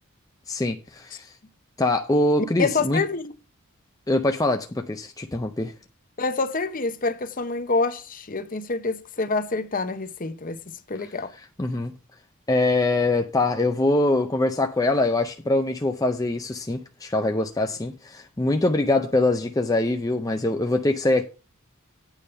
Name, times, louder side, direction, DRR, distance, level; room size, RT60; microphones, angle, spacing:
voice 1, 0.5-1.3 1.8-3.0 4.1-5.7 11.6-11.9 12.5-21.2, left 2 dB, 15° left, 0.5 m, -23 dB
voice 2, 2.6-3.3 6.2-10.6 10.9-11.3, left 3 dB, 40° left, 0.9 m, -27 dB
9.0 x 5.0 x 6.7 m
head